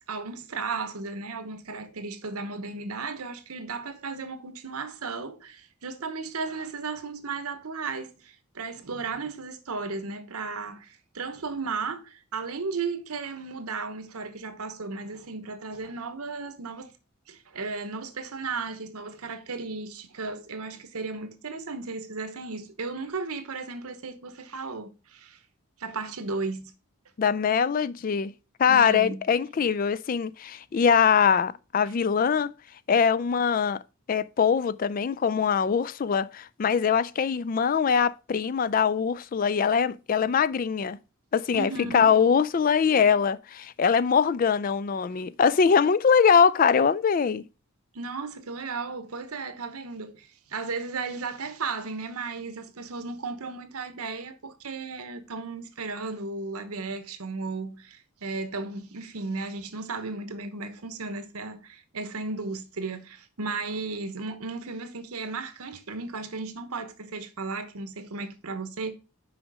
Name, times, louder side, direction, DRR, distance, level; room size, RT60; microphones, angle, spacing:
voice 1, 0.1-16.9 17.3-25.4 25.8-26.7 28.7-29.2 41.5-42.1 47.9-68.9, right 4 dB, 85° right, 1.0 m, -35 dB
voice 2, 27.2-28.3 28.6-32.5 32.9-33.8 34.1-41.0 41.3-47.4, left 6 dB, 40° left, 0.3 m, -22 dB
6.2 x 5.0 x 4.9 m
head